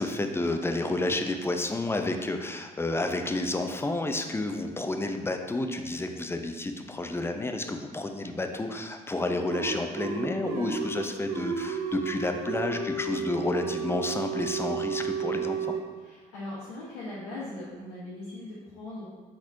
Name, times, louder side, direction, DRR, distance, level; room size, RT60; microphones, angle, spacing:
voice 1, 0.0-15.8, left 2 dB, 10° left, 5 dB, 0.5 m, -30 dB
sound 1, 9.2-15.8, right 5 dB, 65° right, 0.6 m, -32 dB
voice 2, 16.0-19.1, left 2 dB, 75° left, -8 dB, 1.0 m, -39 dB
4.4 x 4.0 x 2.6 m, 1.4 s
hypercardioid pair, 50°, 19 cm